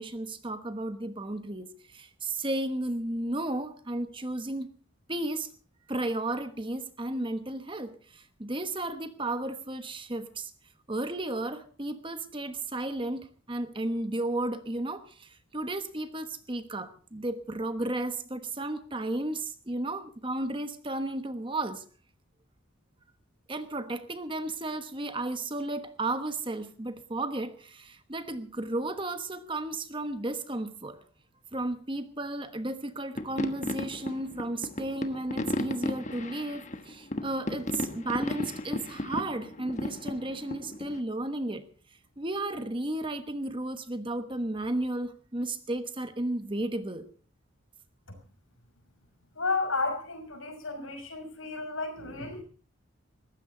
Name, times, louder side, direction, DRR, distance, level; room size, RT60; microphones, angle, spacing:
voice 1, 0.0-4.7 5.1-5.5 5.9-10.5 10.9-21.8 23.5-31.0 31.5-41.7 42.2-47.1, right 2 dB, 25° right, 10 dB, 1.2 m, -33 dB
sound 1, 33.2-41.0, left 1 dB, 35° left, 1.3 m, -35 dB
voice 2, 49.3-52.4, left 3 dB, 70° left, 5 dB, 6.1 m, -32 dB
20.5 x 15.5 x 3.9 m, 0.39 s
head